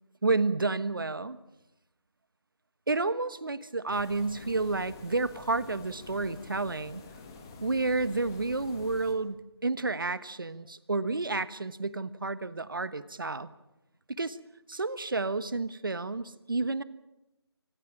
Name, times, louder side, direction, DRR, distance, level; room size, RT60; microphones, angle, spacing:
voice 1, 0.2-1.4 2.9-7.0 7.6-13.5 14.1-14.4 14.7-16.8, right 3 dB, 50° right, 15 dB, 1.3 m, -30 dB
sound 1, 3.9-9.1, left 3 dB, 10° left, 1.3 m, -48 dB
25.5 x 20.5 x 7.4 m, 0.94 s
figure-of-eight pair, 175°, 14 cm